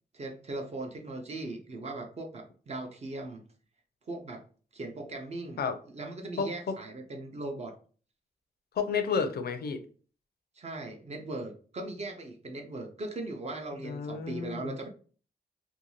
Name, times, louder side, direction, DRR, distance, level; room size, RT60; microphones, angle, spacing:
voice 1, 0.1-3.5 4.1-4.4 4.7-5.6 5.9-7.8 10.6-14.9, right 2 dB, 40° right, 3 dB, 0.5 m, -39 dB
voice 2, 6.4-6.8 8.8-9.8 13.8-14.8, left 5 dB, 70° left, 8 dB, 0.4 m, -31 dB
2.6 x 2.3 x 3.0 m, 0.40 s
wide cardioid pair, 135°, 17 cm